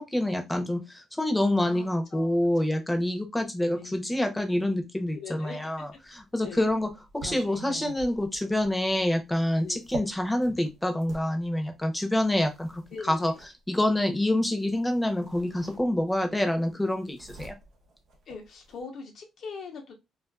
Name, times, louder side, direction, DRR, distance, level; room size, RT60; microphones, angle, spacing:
voice 1, 0.0-13.3 13.7-17.6, left 1 dB, 10° left, 5 dB, 0.6 m, -27 dB
voice 2, 1.6-2.6 3.7-3.9 5.1-5.6 6.4-6.6 9.6-9.8 12.9-13.4 18.3-19.9, left 5 dB, 70° left, 3 dB, 0.7 m, -42 dB
sound 1, 5.9-11.3 12.2-13.5 14.7-14.9 15.2-16.3 16.6-18.8, right 2 dB, 80° right, 0.8 m, -44 dB
2.4 x 2.4 x 2.3 m, 0.22 s
cardioid pair, 90°, 0 cm